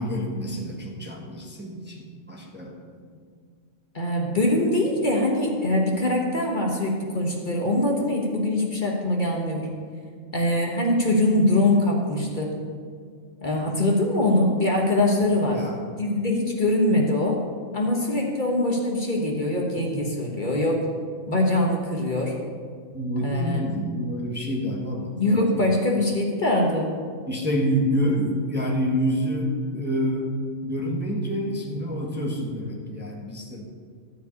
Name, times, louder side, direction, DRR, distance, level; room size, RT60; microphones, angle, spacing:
voice 1, 0.0-2.0 2.3-2.7 15.5-15.8 19.8-19.9 22.9-25.9 27.3-30.3 30.6-33.7, equal, 10° right, -1 dB, 1.3 m, -27 dB
voice 2, 3.9-9.7 10.3-12.5 13.4-15.6 16.0-17.4 17.7-20.8 21.3-22.4 23.2-23.6 25.2-26.9, left 1 dB, 40° left, -1 dB, 1.4 m, -23 dB
13.0 x 4.9 x 8.2 m, 2.1 s
omnidirectional pair, 1.3 m